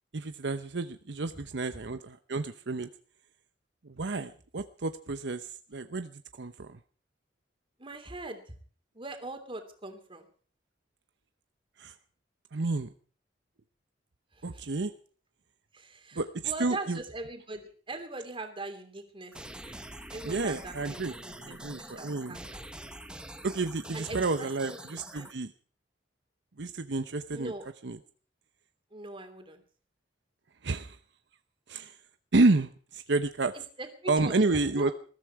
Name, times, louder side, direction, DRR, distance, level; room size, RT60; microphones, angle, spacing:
voice 1, 0.1-2.9 3.8-6.8 11.8-11.9 12.5-12.9 14.4-14.9 16.1-17.0 20.2-21.1 21.4-22.4 23.4-25.5 26.6-27.5 27.8-28.0 30.6-31.0 31.7-32.0 32.3-33.5 34.1-34.9, right 3 dB, 70° right, 9 dB, 0.8 m, -30 dB
voice 2, 7.8-8.5 8.9-10.3 14.3-14.6 15.7-19.8 20.1-22.7 23.9-24.8 25.1-25.3 27.3-27.7 28.9-29.6 33.5-34.9, right 2 dB, 30° right, 6 dB, 3.1 m, -41 dB
sound 1, 19.3-25.3, right 1 dB, 5° right, 1.3 m, -45 dB
21.0 x 14.0 x 4.7 m, 0.42 s
head